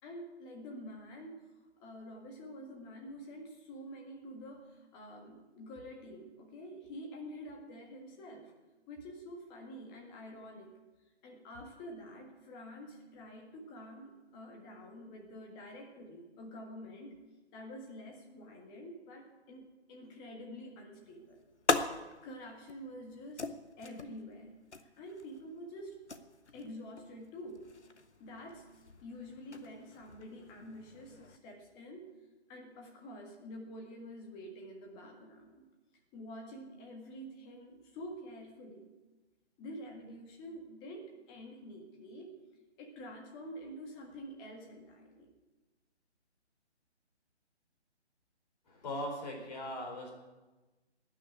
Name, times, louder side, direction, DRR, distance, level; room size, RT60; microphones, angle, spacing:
voice 1, 0.0-1.4 1.8-8.5 8.9-10.8 11.2-17.1 17.5-21.5 22.2-23.4 23.8-24.5 24.9-26.0 26.5-27.7 28.2-32.1 32.5-35.6 36.1-38.8 39.6-42.4 42.8-45.3, equal, 15° left, 2 dB, 1.7 m, -48 dB
sound 1, 20.9-31.4, left 3 dB, 75° left, 1.3 m, -41 dB
voice 2, 48.7-50.1, left 1 dB, 40° left, 0 dB, 4.7 m, -39 dB
18.5 x 6.5 x 9.5 m, 1.2 s
figure-of-eight pair, 145°, 34 cm